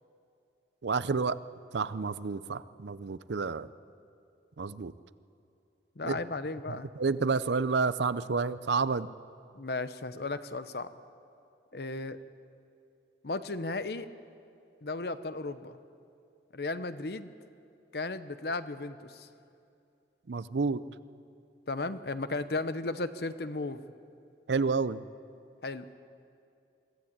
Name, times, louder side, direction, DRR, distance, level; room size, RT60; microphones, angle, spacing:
voice 1, 0.8-1.4 1.7-3.7 4.6-4.9 6.0-6.2 6.7-9.1 20.3-20.8 24.5-25.0, right 4 dB, 80° right, 16 dB, 0.6 m, -30 dB
voice 2, 6.0-6.9 9.5-10.9 11.7-12.2 13.2-14.1 14.8-15.8 16.5-17.3 17.9-19.3 21.7-23.9 25.6-25.9, left 3 dB, 65° left, 12 dB, 0.8 m, -35 dB
23.0 x 15.0 x 8.8 m, 2.6 s
head